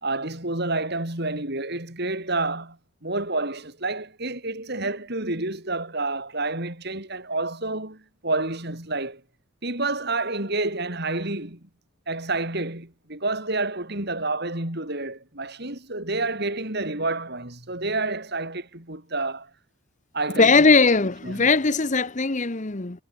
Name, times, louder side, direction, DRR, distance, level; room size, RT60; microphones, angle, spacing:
voice 1, 0.0-9.2 9.6-11.7 12.1-19.5 20.1-20.5 21.2-21.5, right 2 dB, 50° right, 4.5 m, -29 dB
voice 2, 20.3-23.0, left 4 dB, 35° left, 1.0 m, -19 dB
head